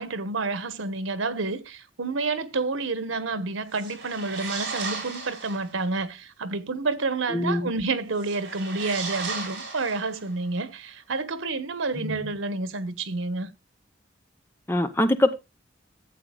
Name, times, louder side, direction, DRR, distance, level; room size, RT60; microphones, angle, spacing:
voice 1, 0.0-13.5, right 3 dB, 90° right, 1.0 m, -29 dB
sound 1, 3.7-5.8 8.1-10.5, right 4 dB, 60° right, 4.8 m, -35 dB
voice 2, 7.3-7.7 12.0-12.1 14.7-15.3, left 1 dB, 10° left, 0.6 m, -23 dB
14.0 x 7.9 x 2.2 m
head